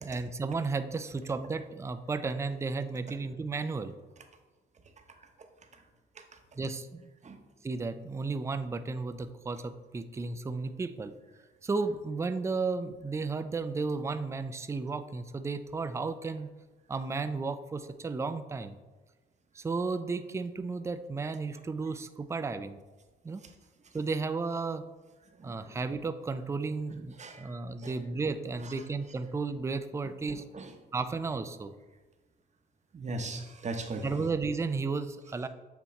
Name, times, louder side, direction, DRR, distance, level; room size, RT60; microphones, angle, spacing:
voice 1, 0.0-3.9 6.6-7.1 7.6-11.1 11.6-16.5 16.9-18.8 19.5-22.8 23.2-23.4 23.9-24.8 25.4-30.4 30.9-31.7 34.0-35.5, right 4 dB, 15° right, 10 dB, 0.3 m, -33 dB
voice 2, 25.4-25.8 27.2-27.5 27.8-28.0 28.6-28.7 30.3-30.7 32.9-34.2, right 2 dB, 35° right, 5 dB, 0.8 m, -39 dB
7.6 x 2.9 x 4.1 m, 1.2 s
cardioid pair, 90°, 20 cm